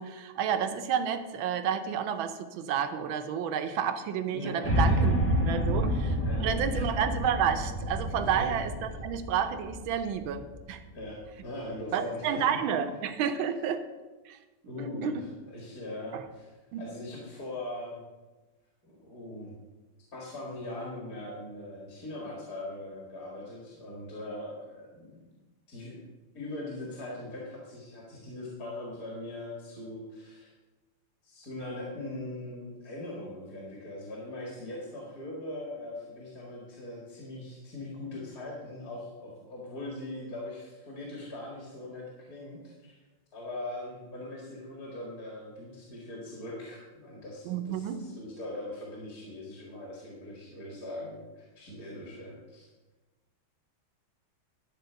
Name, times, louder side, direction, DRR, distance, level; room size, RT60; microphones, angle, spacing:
voice 1, 0.0-10.8 11.9-13.8 14.3-14.4 15.0-15.1 16.1-16.2 16.7-16.9 47.5-48.1, right 8 dB, 80° right, 9 dB, 1.6 m, -30 dB
voice 2, 4.3-4.9 6.2-6.9 8.3-8.5 10.9-12.4 14.7-16.5 16.8-18.0 18.8-19.5 20.1-25.4 25.7-26.0 26.3-30.5 31.2-43.0 43.3-52.7, left 1 dB, 45° left, -3 dB, 2.3 m, -41 dB
sound 1, 4.6-10.8, equal, 10° left, 0.6 m, -29 dB
12.0 x 4.5 x 6.8 m, 1.2 s
omnidirectional pair, 2.2 m